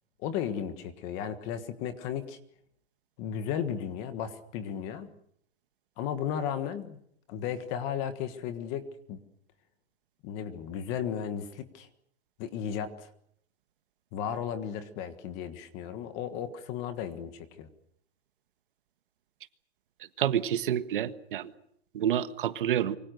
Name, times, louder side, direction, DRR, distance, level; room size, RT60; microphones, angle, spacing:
voice 1, 0.2-2.4 3.2-5.1 6.0-7.0 7.3-9.2 10.2-11.9 12.4-13.1 14.1-17.7, left 8 dB, 20° left, 11 dB, 1.5 m, -35 dB
voice 2, 20.2-21.5 21.9-23.0, right 10 dB, 55° right, 12 dB, 1.6 m, -28 dB
26.5 x 24.5 x 6.6 m, 0.69 s
supercardioid pair, 180°, 32 cm